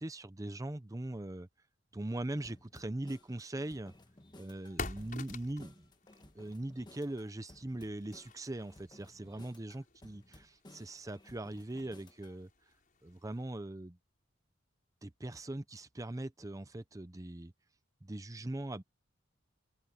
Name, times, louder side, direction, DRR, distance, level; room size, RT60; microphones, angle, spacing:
voice 1, 0.0-1.5 1.9-3.9 4.3-5.9 6.2-10.2 10.5-12.5 13.0-14.0 15.0-17.5 18.0-18.8, right 1 dB, 15° right, 0.6 m, -41 dB
sound 1, 2.4-12.4, left 1 dB, 20° left, 1.4 m, -58 dB
sound 2, 3.2-13.5, left 3 dB, 45° left, 5.6 m, -50 dB
open air
head